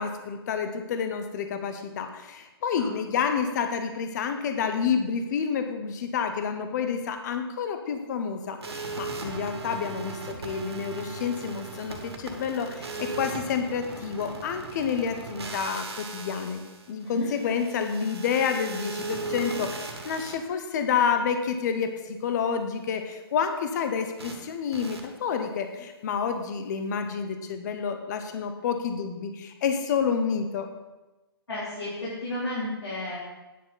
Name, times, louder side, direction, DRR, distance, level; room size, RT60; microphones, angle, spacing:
voice 1, 0.0-16.6 16.9-30.7, left 6 dB, 45° left, 7 dB, 1.0 m, -29 dB
sound 1, 8.6-20.3 24.2-24.4 24.7-25.0, right 3 dB, 85° right, 2.0 m, -38 dB
voice 2, 31.5-33.2, left 1 dB, 90° left, -9 dB, 3.4 m, -33 dB
9.5 x 8.3 x 4.0 m, 1.1 s
hypercardioid pair, 145°, 13 cm